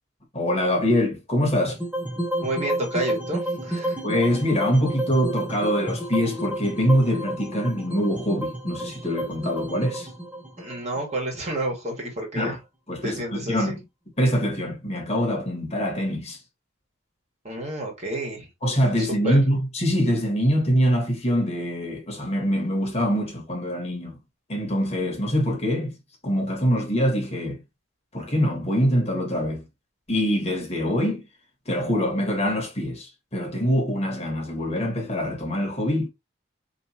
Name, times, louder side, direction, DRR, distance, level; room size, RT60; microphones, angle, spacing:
voice 1, 0.3-1.8 4.0-10.1 12.3-12.6 12.9-13.8 14.2-16.4 18.6-24.2 24.5-25.9 26.2-27.6 28.1-29.6 30.1-31.2 31.7-36.1, equal, 30° left, 1.4 m, -24 dB
sound 1, 1.7-11.9, right 1 dB, 5° right, 0.7 m, -31 dB
voice 2, 2.4-4.0 10.6-12.5 13.0-13.7 17.4-18.5 19.2-19.4, right 1 dB, 35° right, 1.7 m, -30 dB
4.7 x 3.1 x 2.9 m
head